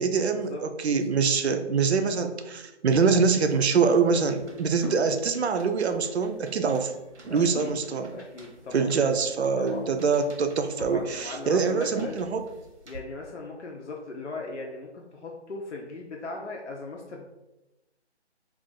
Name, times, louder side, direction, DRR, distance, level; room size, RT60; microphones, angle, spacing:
voice 1, 0.0-6.9 7.3-8.2 8.7-12.5, right 5 dB, 70° right, 8 dB, 0.5 m, -24 dB
sound 1, 3.3-13.0, right 2 dB, 90° right, 0.9 m, -44 dB
voice 2, 7.3-7.7 8.1-8.9 9.6-9.9 10.8-12.1 12.9-17.2, left 3 dB, 90° left, -1 dB, 0.6 m, -38 dB
2.4 x 2.4 x 3.9 m, 0.99 s
figure-of-eight pair, 175°, 35 cm